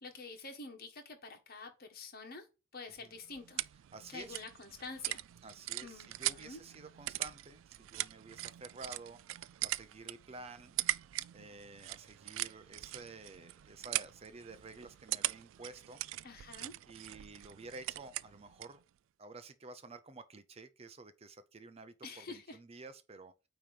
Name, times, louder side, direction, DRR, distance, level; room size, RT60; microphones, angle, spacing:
voice 1, 0.0-2.5 2.7-3.6 4.1-5.2 5.8-6.6 16.2-16.7 22.0-22.6, left 3 dB, 50° left, 1.5 m, -47 dB
sound 1, 3.0-18.8, right 16 dB, 90° right, 0.3 m, -41 dB
voice 2, 3.9-4.4 5.4-10.8 11.3-16.0 16.9-18.8 19.2-23.3, right 3 dB, 30° right, 0.6 m, -51 dB
8.9 x 3.0 x 5.0 m
head